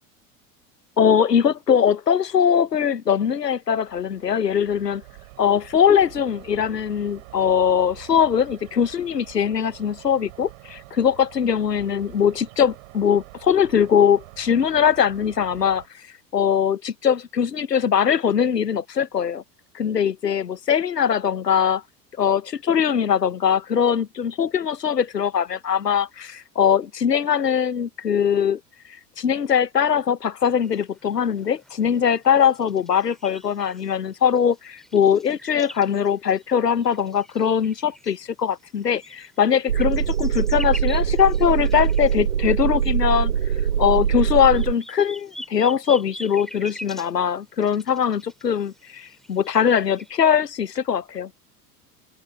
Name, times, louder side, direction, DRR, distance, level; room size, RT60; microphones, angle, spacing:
voice 1, 1.0-5.0 5.4-15.8 16.3-19.4 19.7-21.8 22.2-28.6 29.2-43.3 43.8-51.3, left 8 dB, 85° left, 0.9 m, -21 dB
sound 1, 3.7-15.9, right 23 dB, 55° right, 3.7 m, -46 dB
sound 2, 30.6-50.1, equal, ahead, 2.5 m, -44 dB
sound 3, 39.7-44.7, right 8 dB, 85° right, 0.9 m, -22 dB
figure-of-eight pair, 80°, 47 cm